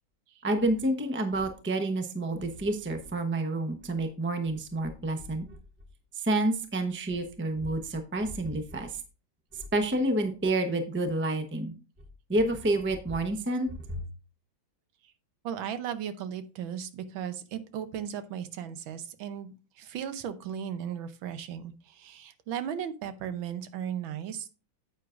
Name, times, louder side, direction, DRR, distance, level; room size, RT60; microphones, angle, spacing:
voice 1, 0.4-5.5 6.1-9.0 9.5-11.7 12.3-14.0, right 1 dB, 10° right, 6 dB, 0.5 m, -29 dB
voice 2, 15.4-24.5, right 9 dB, 90° right, 11 dB, 1.6 m, -36 dB
9.4 x 8.3 x 2.5 m, 0.34 s
omnidirectional pair, 2.1 m